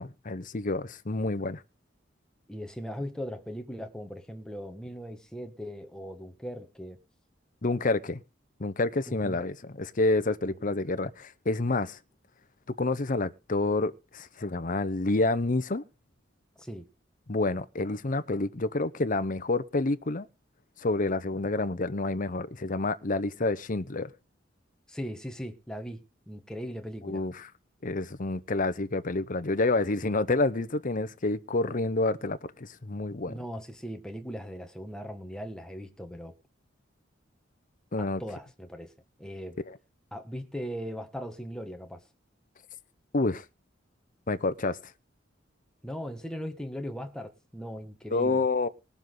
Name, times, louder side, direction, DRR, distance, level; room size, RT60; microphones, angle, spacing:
voice 1, 0.0-1.6 7.6-8.2 8.6-12.0 12.8-15.8 17.3-20.3 20.8-24.1 27.0-27.3 27.8-33.3 37.9-38.2 43.1-43.4 44.3-44.8 48.1-48.7, left 2 dB, 45° left, 0.8 m, -28 dB
voice 2, 2.5-7.0 9.1-9.4 10.4-10.6 16.6-16.9 24.9-27.2 33.3-36.3 38.0-38.9 39.2-39.6 40.1-42.0 45.8-48.4, equal, 5° left, 1.6 m, -39 dB
20.5 x 7.2 x 3.9 m
head